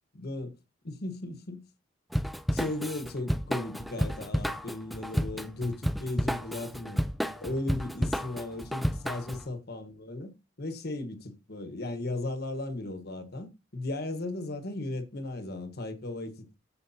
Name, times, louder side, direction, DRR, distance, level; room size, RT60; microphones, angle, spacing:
voice 1, 0.1-0.5 0.8-1.6 2.5-7.0 7.4-10.3 10.6-16.5, left 2 dB, 55° left, 1.4 m, -36 dB
Drum kit / Drum, 2.1-9.4, equal, ahead, 0.4 m, -31 dB
14.0 x 5.2 x 2.8 m
head